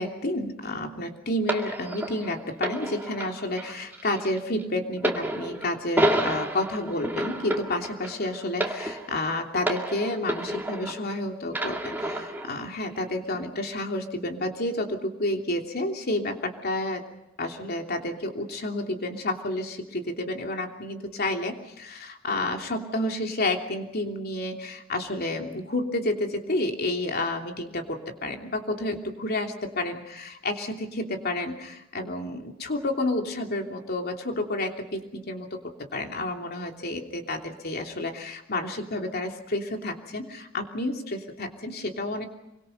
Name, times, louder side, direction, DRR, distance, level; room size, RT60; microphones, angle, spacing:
voice 1, 0.0-17.0 17.4-35.6 35.9-42.3, left 1 dB, 50° left, 3 dB, 3.1 m, -30 dB
sound 1, 1.5-11.1 11.5-12.6 13.3-13.5, right 1 dB, 10° right, 2.5 m, -30 dB
27.0 x 24.5 x 5.4 m, 0.91 s
head